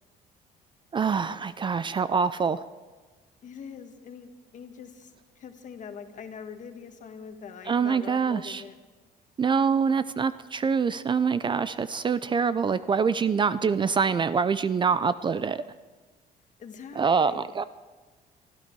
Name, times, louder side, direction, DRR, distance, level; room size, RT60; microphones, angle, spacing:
voice 1, 0.9-2.6 7.7-8.6 9.4-15.6 17.0-17.6, right 6 dB, 30° right, 14 dB, 0.4 m, -25 dB
voice 2, 3.4-8.8 16.6-17.4, left 6 dB, 50° left, 7 dB, 1.6 m, -43 dB
24.0 x 13.0 x 4.6 m, 1.3 s
cardioid pair, 110°, 17 cm